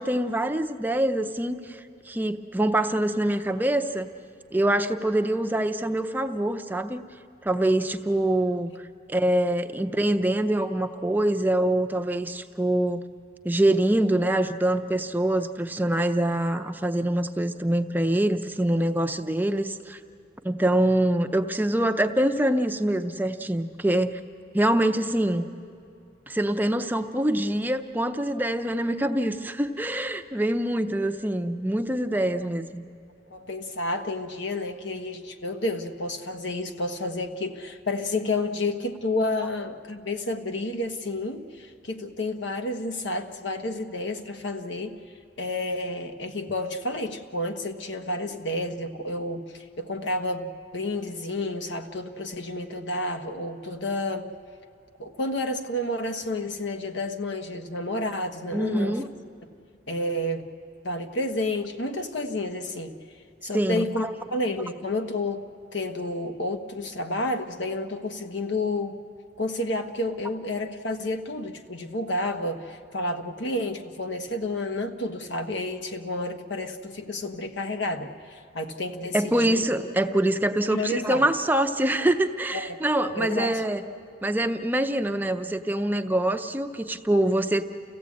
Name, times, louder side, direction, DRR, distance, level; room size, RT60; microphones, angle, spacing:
voice 1, 0.0-1.8 2.1-4.1 4.5-7.0 7.4-8.7 9.1-13.0 13.4-20.0 20.4-24.1 24.5-25.5 26.3-32.8 58.5-59.1 63.5-64.1 79.1-83.8 84.2-87.7, right 1 dB, 10° right, 6 dB, 0.5 m, -25 dB
voice 2, 33.3-45.0 45.4-54.3 55.0-59.0 59.9-60.4 60.8-63.0 63.4-65.4 65.7-69.0 69.4-79.6 80.7-81.3 82.5-82.8 83.1-83.6, left 2 dB, 75° left, 6 dB, 1.2 m, -30 dB
30.0 x 15.5 x 8.5 m, 2.5 s
head